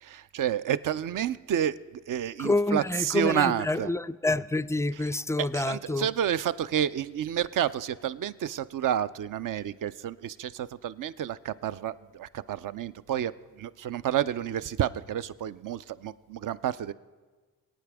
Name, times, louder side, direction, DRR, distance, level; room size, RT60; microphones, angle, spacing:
voice 1, 0.0-3.9 4.9-16.9, right 10 dB, 55° right, 0.6 m, -30 dB
voice 2, 2.4-6.1, left 2 dB, 10° left, 0.3 m, -27 dB
21.0 x 9.0 x 3.5 m
hypercardioid pair, 40°, 38 cm